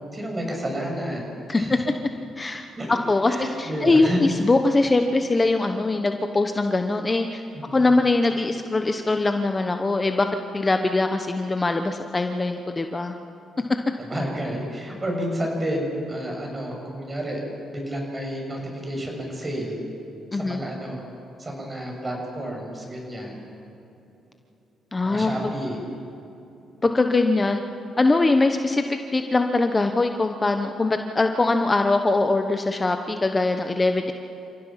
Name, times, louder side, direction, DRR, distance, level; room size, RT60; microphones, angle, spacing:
voice 1, 0.1-1.8 2.8-3.0 3.2-4.2 7.5-7.8 14.0-17.4 17.7-19.8 20.3-21.0 21.4-23.4 25.0-25.8, equal, 25° right, 0 dB, 6.7 m, -30 dB
voice 2, 2.4-7.4 7.7-10.3 10.5-13.1 20.3-20.6 24.9-25.3 26.8-27.6 28.0-34.1, left 2 dB, 25° left, 6 dB, 1.0 m, -22 dB
29.0 x 16.5 x 5.8 m, 2.9 s
cardioid pair, 90°, 0 cm